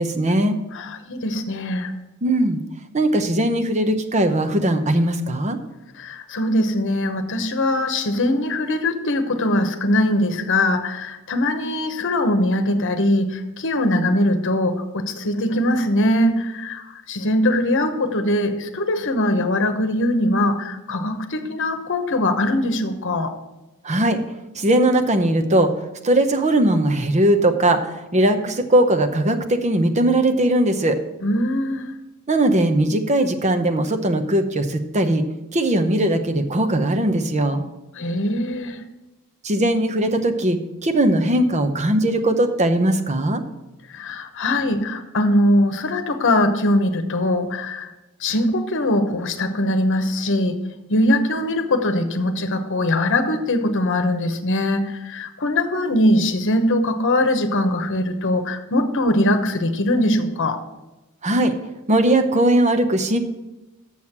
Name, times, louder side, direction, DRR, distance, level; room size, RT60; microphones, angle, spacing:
voice 1, 0.0-0.6 2.2-2.6 2.9-5.6 23.8-24.2 24.6-25.7 26.0-31.0 32.3-35.2 35.5-37.6 39.4-43.4 61.2-61.5 61.9-63.2, right 1 dB, 30° right, 7 dB, 0.8 m, -19 dB
voice 2, 0.7-1.9 6.0-23.3 31.2-31.9 37.9-38.8 43.9-47.9 48.2-50.6 50.9-60.6, left 1 dB, 60° left, 7 dB, 1.0 m, -21 dB
7.3 x 6.3 x 7.3 m, 1.0 s
head